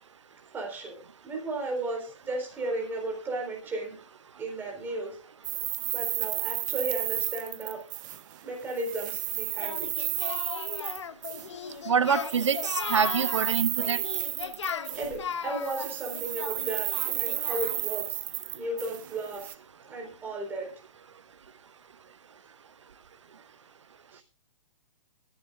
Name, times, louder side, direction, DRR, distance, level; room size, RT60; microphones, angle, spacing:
voice 1, 0.5-4.0 4.4-5.2 5.9-7.8 8.4-9.9 14.2-14.3 14.9-18.2 18.5-19.5 19.9-20.7 24.1-24.2, right 2 dB, 10° right, 4.1 m, -35 dB
sound 1, 5.4-8.4 8.7-11.5 12.1-15.3 15.6-19.5, right 15 dB, 40° right, 0.8 m, -32 dB
Singing, 9.6-17.9, left 7 dB, 65° left, 1.4 m, -37 dB
voice 2, 11.9-14.0, right 7 dB, 70° right, 1.1 m, -26 dB
23.5 x 11.0 x 2.4 m
figure-of-eight pair, 130°, 16 cm